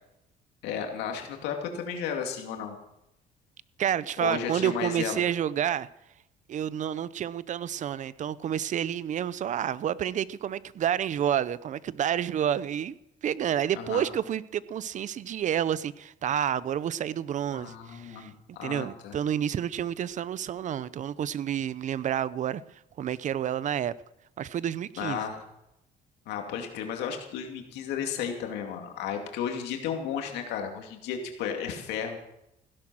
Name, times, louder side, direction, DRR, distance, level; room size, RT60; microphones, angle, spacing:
voice 1, 0.6-2.8 4.2-5.2 13.8-14.1 17.5-19.2 25.0-25.4 26.3-32.2, left 7 dB, 90° left, 3 dB, 2.5 m, -33 dB
voice 2, 3.8-5.9 6.5-12.9 13.2-18.3 18.6-22.6 23.0-23.9 24.4-25.2, right 9 dB, 45° right, 18 dB, 0.6 m, -29 dB
16.0 x 11.0 x 6.2 m, 0.84 s
cardioid pair, 110°, 17 cm